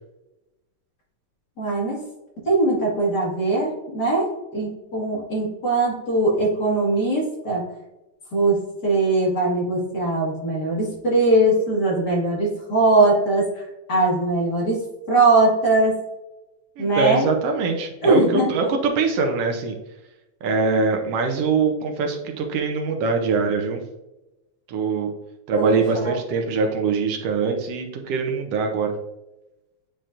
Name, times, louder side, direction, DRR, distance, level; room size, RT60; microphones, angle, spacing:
voice 1, 1.6-2.0 2.4-7.6 8.3-14.8 15.1-16.0 16.8-17.3 18.0-18.5 25.6-26.2, right 2 dB, 45° left, -4 dB, 1.7 m, -21 dB
voice 2, 16.8-19.8 20.4-23.8 24.7-25.1 25.5-28.9, right 4 dB, 75° right, 4 dB, 1.5 m, -23 dB
8.6 x 4.4 x 2.5 m, 0.98 s
omnidirectional pair, 3.4 m